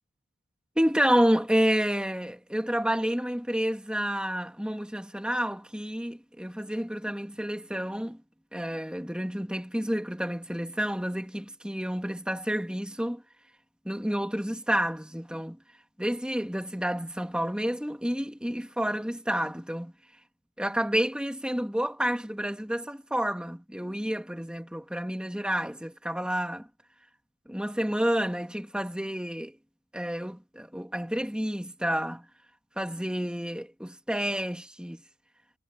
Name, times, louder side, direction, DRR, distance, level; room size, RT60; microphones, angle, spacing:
voice 1, 0.8-8.2 8.5-13.2 13.9-15.6 16.0-19.9 20.6-26.7 27.5-29.6 29.9-32.3 32.8-35.0, equal, 5° right, 2.1 m, -29 dB
head